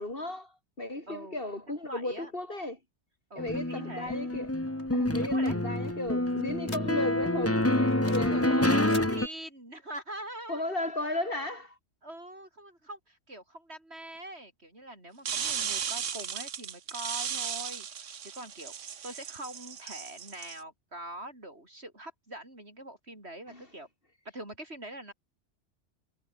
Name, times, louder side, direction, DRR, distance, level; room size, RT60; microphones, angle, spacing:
voice 1, 0.0-2.8 3.4-4.5 4.9-9.1 10.5-11.8 23.5-23.6, left 2 dB, 50° left, 4.2 m, -35 dB
voice 2, 1.1-1.4 1.9-2.3 3.3-4.2 5.2-5.6 8.0-10.6 12.0-18.7 19.0-23.9 24.3-25.1, right 1 dB, 60° right, 8.2 m, -43 dB
sound 1, 3.4-9.3, left 1 dB, 10° left, 1.7 m, -27 dB
sound 2, 4.8-7.3 7.6-8.4 8.6-9.1, left 2 dB, 65° left, 4.8 m, -47 dB
sound 3, 15.3-20.6, right 8 dB, 90° right, 1.5 m, -36 dB
omnidirectional pair, 1.2 m